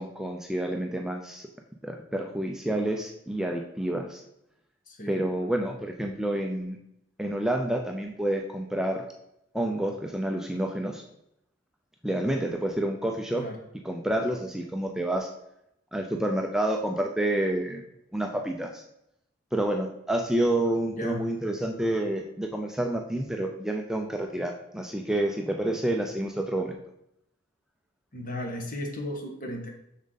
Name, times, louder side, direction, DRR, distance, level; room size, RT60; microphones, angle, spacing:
voice 1, 0.0-1.5 1.8-4.2 5.1-6.8 7.2-9.0 9.5-11.0 12.0-13.4 13.8-15.3 15.9-17.8 18.1-18.8 19.5-26.8, right 1 dB, 5° right, 2 dB, 0.5 m, -29 dB
voice 2, 4.9-5.2 13.4-13.6 20.9-21.2 28.1-29.7, left 1 dB, 45° left, 3 dB, 1.4 m, -35 dB
7.0 x 6.4 x 4.0 m, 0.80 s
head